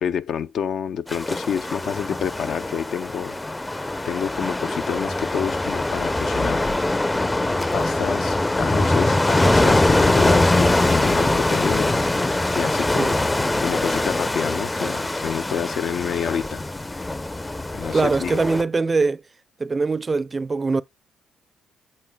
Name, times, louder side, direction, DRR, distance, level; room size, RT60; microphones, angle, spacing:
voice 1, 0.0-3.4 4.0-6.7 7.7-11.9 12.6-16.6 17.7-18.4, left 8 dB, 65° left, 0.5 m, -28 dB
sound 1, 1.1-18.6, left 2 dB, 15° left, 0.5 m, -22 dB
voice 2, 17.9-19.2 19.6-20.8, right 4 dB, 30° right, 0.4 m, -22 dB
8.4 x 6.6 x 2.2 m
supercardioid pair, 70°, 0 cm